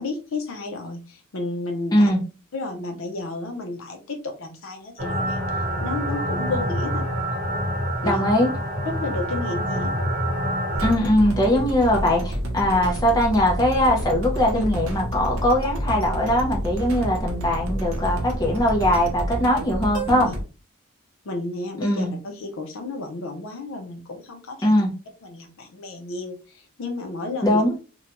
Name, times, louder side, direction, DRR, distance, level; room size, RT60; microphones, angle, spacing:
voice 1, 0.0-2.1 2.5-5.4 5.8-7.0 8.0-8.2 8.8-9.9 11.5-11.6 14.5-14.6 20.3-20.4 21.2-24.8 25.2-27.6, left 2 dB, 60° left, 0.5 m, -32 dB
sound 1, 5.0-10.9, equal, 40° right, 0.9 m, -26 dB
voice 2, 8.0-8.5 10.8-20.3 21.8-22.1 24.6-24.9 27.4-27.7, left 1 dB, 15° left, 0.6 m, -21 dB
sound 2, 10.7-20.4, right 1 dB, 70° right, 0.7 m, -29 dB
2.6 x 2.2 x 2.8 m
head